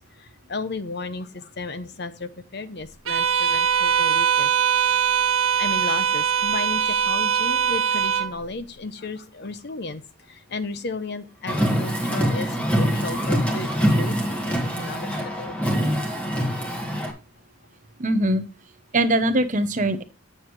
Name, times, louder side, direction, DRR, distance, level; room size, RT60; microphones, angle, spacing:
voice 1, 0.1-4.5 4.9-5.0 5.6-16.3, left 3 dB, 50° left, 12 dB, 0.8 m, -34 dB
Bowed string instrument, 3.1-8.3, right 8 dB, 70° right, 1.0 m, -21 dB
Car, 11.5-17.1, equal, 5° left, 1.5 m, -24 dB
voice 2, 18.0-18.4 18.9-20.0, right 1 dB, 35° right, 10 dB, 0.8 m, -21 dB
9.0 x 7.8 x 3.1 m, 0.29 s
head